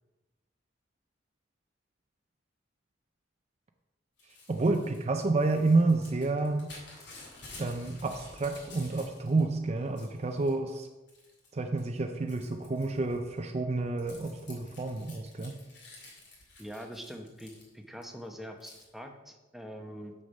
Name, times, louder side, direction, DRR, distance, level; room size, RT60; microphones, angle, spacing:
Crumpling crinkling / Tearing, 4.2-9.4 9.8-10.5 11.1-11.5 11.8-18.0 18.6-18.9, left 2 dB, 65° left, 2.5 m, -51 dB
voice 1, 4.5-6.7 7.6-10.9 11.5-15.6, right 3 dB, 35° right, 5 dB, 0.5 m, -29 dB
voice 2, 16.6-20.1, equal, ahead, 4 dB, 0.8 m, -44 dB
6.6 x 6.4 x 5.4 m, 1.1 s
head